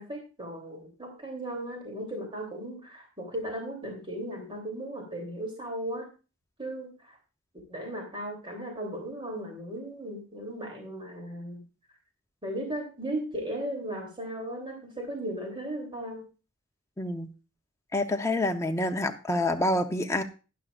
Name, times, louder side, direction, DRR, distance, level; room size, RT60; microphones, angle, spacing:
voice 1, 0.0-6.1 6.6-7.1 7.7-11.6 12.4-16.2, right 1 dB, 25° right, 1 dB, 3.1 m, -36 dB
voice 2, 17.0-17.3 17.9-20.2, left 1 dB, 15° left, 4 dB, 0.8 m, -27 dB
12.5 x 10.5 x 2.5 m, 0.32 s
head